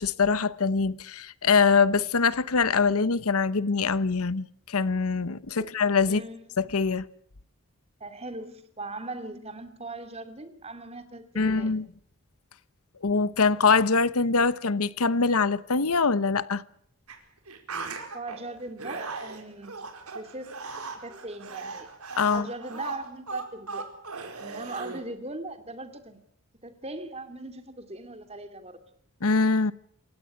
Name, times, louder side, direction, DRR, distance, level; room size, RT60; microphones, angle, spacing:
voice 1, 0.0-6.2 6.6-7.1 11.4-11.9 13.0-16.6 22.2-22.5 29.2-29.7, left 4 dB, 80° left, 0.9 m, -23 dB
voice 2, 6.1-6.4 8.0-11.7 18.1-19.7 20.0-21.9 22.3-23.9 24.4-26.2 26.6-28.8, right 2 dB, 25° right, 2.5 m, -39 dB
sound 1, 17.1-17.2 17.5-18.4 18.8-25.0, right 4 dB, 85° right, 4.7 m, -38 dB
28.0 x 16.0 x 9.6 m
head